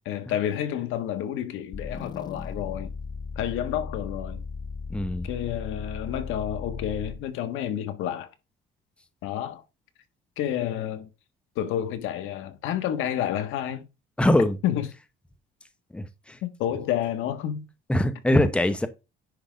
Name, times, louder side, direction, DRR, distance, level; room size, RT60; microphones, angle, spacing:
voice 1, 0.1-2.9 3.3-4.4 5.2-8.3 9.2-9.6 10.4-11.1 11.5-13.9 14.6-14.9 16.4-17.7 18.3-18.5, left 10 dB, 85° left, 1.5 m, -30 dB
sound 1, 1.7-7.3, left 5 dB, 20° left, 0.3 m, -36 dB
voice 2, 4.9-5.3 14.2-14.6 15.9-16.4 17.9-18.9, left 1 dB, 5° left, 0.8 m, -22 dB
10.0 x 3.7 x 5.1 m
cardioid pair, 130°, 20 cm